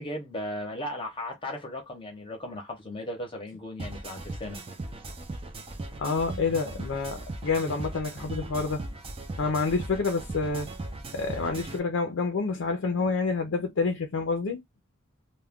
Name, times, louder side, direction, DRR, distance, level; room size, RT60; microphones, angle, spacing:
voice 1, 0.0-4.6, left 1 dB, 25° left, 0.7 m, -36 dB
sound 1, 3.8-11.8, right 2 dB, 30° right, 0.5 m, -38 dB
voice 2, 6.0-8.8 9.4-10.7 11.1-14.6, left 4 dB, 65° left, 0.5 m, -28 dB
2.3 x 2.1 x 3.5 m
head